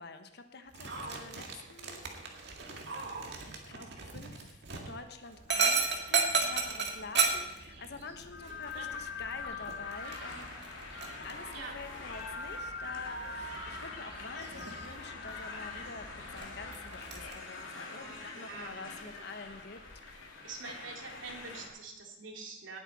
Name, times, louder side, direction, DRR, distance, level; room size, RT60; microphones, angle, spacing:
voice 1, 0.0-2.0 3.4-3.9 4.1-10.6 11.2-19.8, left 4 dB, 60° left, 8 dB, 1.2 m, -47 dB
Dog, 0.7-17.3, right 4 dB, 60° right, 2.0 m, -36 dB
sound 1, 8.3-21.7, left 3 dB, 90° left, 2.7 m, -43 dB
voice 2, 18.0-19.2 20.4-22.8, right 4 dB, 80° right, 1 dB, 2.7 m, -45 dB
18.0 x 8.5 x 4.3 m, 0.96 s
head